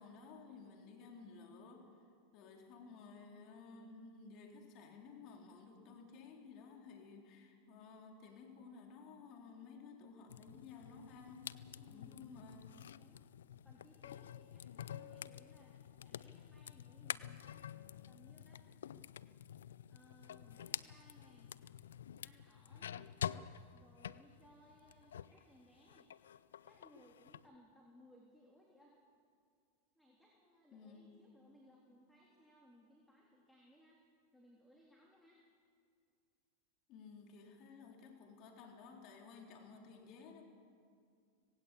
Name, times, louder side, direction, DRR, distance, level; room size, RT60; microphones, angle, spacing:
voice 1, 0.0-2.0 2.3-12.7 30.7-31.2 36.9-40.4, left 4 dB, 50° left, 2 dB, 3.8 m, -55 dB
sound 1, 10.3-25.4 25.8-27.4, left 9 dB, 85° left, 0.5 m, -48 dB
voice 2, 11.8-12.2 12.9-13.3 13.6-17.7 18.0-18.6 19.9-21.5 22.2-23.1 23.7-26.1 26.6-29.0 29.9-34.0 34.3-35.4, equal, 5° left, -3 dB, 3.3 m, -65 dB
18.5 x 17.5 x 8.5 m, 2.2 s
hypercardioid pair, 110°, 0 cm